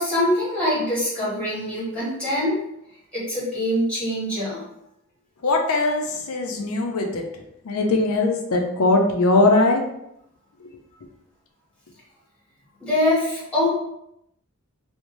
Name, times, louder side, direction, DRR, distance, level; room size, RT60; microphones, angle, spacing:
voice 1, 0.0-2.6 3.1-4.6 12.8-13.7, left 1 dB, 5° left, -9 dB, 1.2 m, -23 dB
voice 2, 5.4-9.8 10.6-10.7, left 2 dB, 75° left, 3 dB, 0.5 m, -21 dB
2.5 x 2.1 x 3.0 m, 0.80 s
head